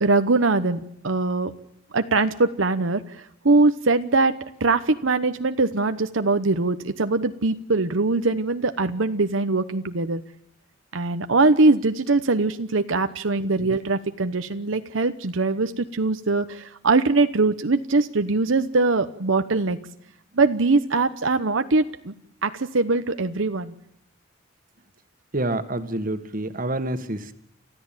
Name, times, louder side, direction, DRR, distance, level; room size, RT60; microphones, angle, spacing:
voice 1, 0.0-1.5 1.9-4.3 4.6-10.2 10.9-19.8 20.3-22.1 22.4-23.7, right 3 dB, 85° right, 9 dB, 1.0 m, -22 dB
voice 2, 25.3-27.4, right 1 dB, 45° right, 9 dB, 1.7 m, -27 dB
30.0 x 14.0 x 9.1 m, 0.77 s
head